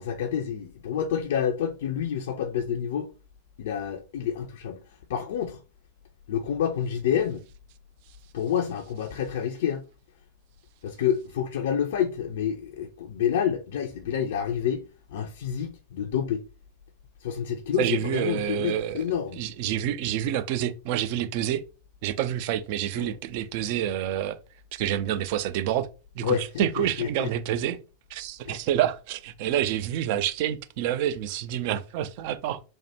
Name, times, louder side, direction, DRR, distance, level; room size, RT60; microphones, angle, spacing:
voice 1, 0.0-3.1 3.6-4.8 5.1-5.6 6.3-7.4 8.3-9.8 10.8-14.8 15.1-16.4 17.2-19.4 23.0-23.1 26.2-27.3 28.5-28.6, left 8 dB, 55° left, 0.3 m, -28 dB
voice 2, 17.8-19.0 19.4-21.6 22.0-24.4 24.7-25.9 26.2-27.8 28.1-32.6, right 11 dB, 45° right, 0.3 m, -28 dB
3.2 x 2.1 x 2.8 m
figure-of-eight pair, 90°, 0 cm